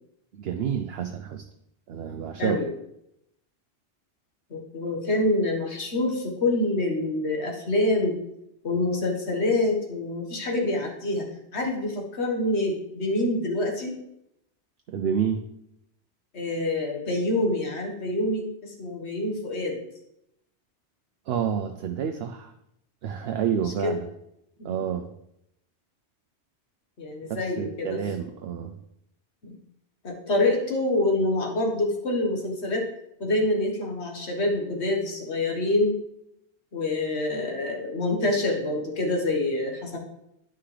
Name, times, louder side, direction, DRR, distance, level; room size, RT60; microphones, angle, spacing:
voice 1, 0.4-1.4 1.9-2.6 14.9-15.4 21.3-22.5 23.0-24.1 24.6-25.1 27.3-28.7, right 8 dB, 70° right, 5 dB, 0.8 m, -29 dB
voice 2, 2.4-2.7 4.5-8.2 8.6-11.3 11.5-14.0 16.3-19.8 23.8-24.0 24.6-24.8 27.0-28.0 29.4-29.5 30.0-32.9 33.2-36.0 36.7-40.0, left 2 dB, 75° left, 1 dB, 1.8 m, -26 dB
9.8 x 5.8 x 3.3 m, 0.78 s
omnidirectional pair, 1.1 m